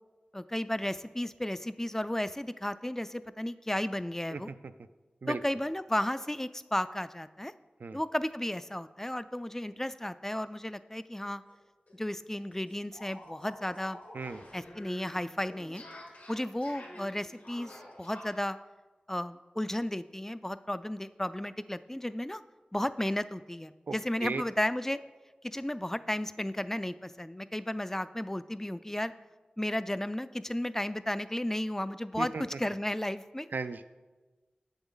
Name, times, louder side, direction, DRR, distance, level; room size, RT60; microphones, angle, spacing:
voice 1, 0.3-4.5 5.3-7.5 7.9-11.4 12.0-14.0 14.5-15.8 16.3-17.7 18.0-18.6 19.1-22.4 22.7-25.0 25.4-29.1 29.6-32.3 32.6-33.5, left 1 dB, 15° left, 14 dB, 0.3 m, -33 dB
sound 1, 11.5-11.6 11.9-12.0 12.3-18.4, left 1 dB, 80° left, 2.0 m, -49 dB
voice 2, 23.9-24.4 32.2-32.6 33.5-33.8, right 4 dB, 80° right, 11 dB, 0.4 m, -36 dB
7.9 x 7.1 x 3.9 m, 1.2 s
wide cardioid pair, 45°, 3 cm